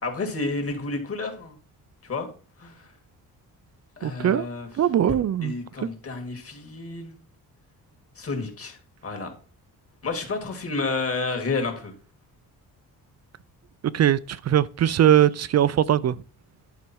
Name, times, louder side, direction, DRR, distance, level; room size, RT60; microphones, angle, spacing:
voice 1, 0.0-1.6 2.0-2.3 2.6-2.9 4.0-4.7 5.4-7.2 8.2-8.8 9.0-9.3 10.0-11.9, left 3 dB, 40° left, 2.5 m, -30 dB
voice 2, 4.0-4.5 4.8-5.5 13.9-16.2, right 10 dB, 45° right, 0.5 m, -20 dB
10.5 x 4.9 x 4.6 m
cardioid pair, 105°, 37 cm